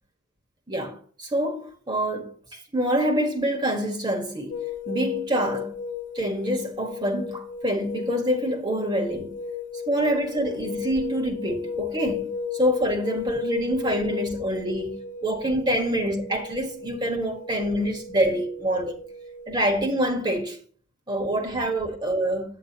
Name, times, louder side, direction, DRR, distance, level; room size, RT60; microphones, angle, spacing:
voice 1, 0.7-5.8 6.1-9.4 9.9-19.0 19.5-20.6 21.1-22.6, right 1 dB, 20° right, 1.5 m, -26 dB
sound 1, 4.5-20.0, left 5 dB, 40° left, 1.4 m, -35 dB
9.0 x 7.6 x 2.9 m
head